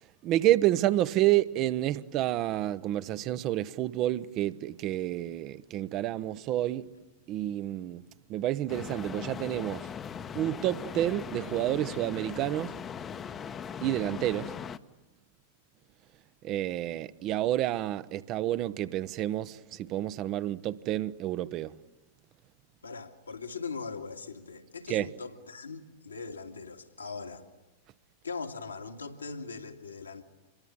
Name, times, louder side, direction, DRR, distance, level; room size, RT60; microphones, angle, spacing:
voice 1, 0.2-6.9 7.3-8.0 8.3-9.9 10.3-12.7 13.8-14.5 16.4-21.7 24.9-25.1, right 14 dB, 40° right, 0.9 m, -29 dB
sound 1, 8.7-14.8, left 7 dB, 25° left, 1.0 m, -39 dB
voice 2, 22.8-27.4 28.2-30.2, left 4 dB, 75° left, 2.3 m, -40 dB
26.5 x 23.0 x 9.8 m
figure-of-eight pair, 90°, 0 cm